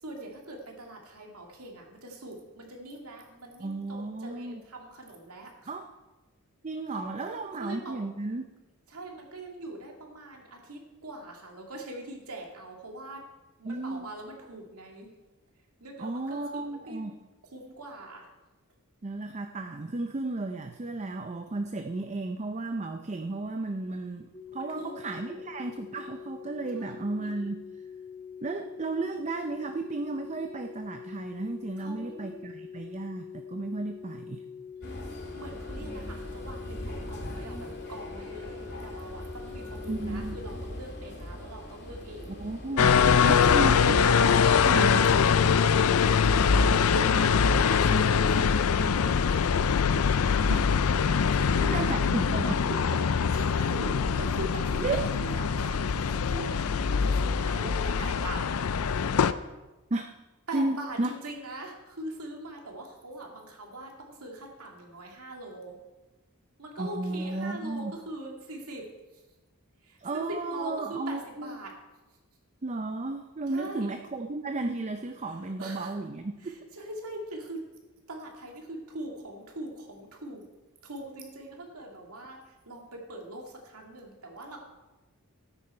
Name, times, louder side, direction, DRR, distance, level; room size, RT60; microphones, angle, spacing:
voice 1, 0.0-5.7 6.9-8.0 8.9-13.2 13.6-15.1 15.8-17.1 17.4-18.3 24.6-25.4 26.8-27.5 31.8-32.5 34.8-42.4 43.2-43.6 44.3-46.7 47.0-49.2 51.3-51.8 53.3-58.5 60.5-65.8 66.6-68.8 69.1-69.2 69.8-71.7 73.5-73.9 75.3-75.9 76.4-77.6 78.1-80.4 80.8-84.6, right 1 dB, 75° right, 1 dB, 2.4 m, -42 dB
voice 2, 3.6-4.6 5.7-5.9 6.6-8.4 13.6-14.1 16.0-17.2 19.0-27.6 28.4-34.4 39.9-40.4 42.4-43.0 43.3-44.1 44.7-45.0 46.7-46.9 50.5-50.6 51.7-52.8 54.8-55.0 59.9-60.1 60.5-61.1 66.8-68.0 70.0-71.6 72.6-76.6, right 2 dB, 30° right, 6 dB, 0.5 m, -33 dB
sound 1, 24.3-40.7, left 7 dB, 20° left, 2.2 m, -44 dB
sound 2, 34.8-45.9, equal, 50° left, 2.1 m, -41 dB
sound 3, 42.8-59.3, left 6 dB, 70° left, 0.5 m, -23 dB
13.5 x 10.0 x 4.4 m, 1.1 s
head